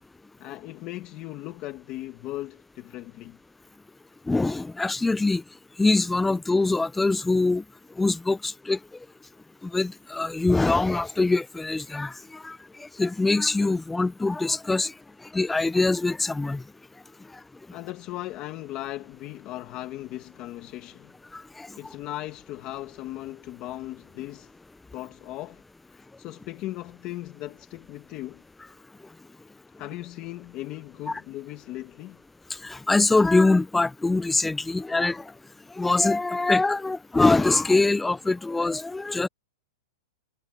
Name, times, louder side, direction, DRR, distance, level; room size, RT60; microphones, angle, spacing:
voice 1, 0.4-3.4 17.7-21.1 21.8-24.5 24.9-28.4 29.8-32.2, left 15 dB, 25° left, 1.4 m, -38 dB
voice 2, 4.3-5.4 5.8-7.6 8.0-8.8 9.6-14.9 15.3-16.6 21.3-21.7 31.1-31.2 32.6-35.2 35.8-39.3, left 3 dB, 5° left, 0.3 m, -23 dB
supercardioid pair, 175°, 3 cm